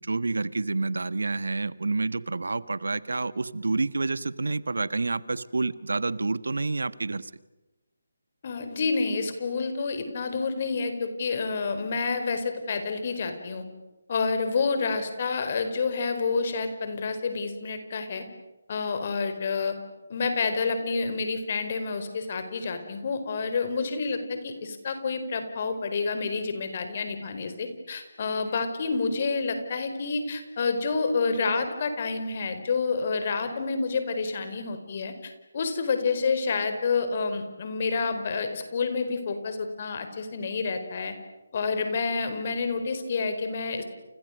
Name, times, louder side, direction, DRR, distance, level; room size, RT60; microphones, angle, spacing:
voice 1, 0.0-7.3, right 3 dB, 70° right, 16 dB, 1.4 m, -28 dB
voice 2, 8.4-13.6 14.1-18.2 18.7-19.8 20.1-41.1 41.5-43.8, left 4 dB, 40° left, 8 dB, 4.7 m, -29 dB
30.0 x 29.5 x 6.6 m, 1.0 s
figure-of-eight pair, 150°, 0 cm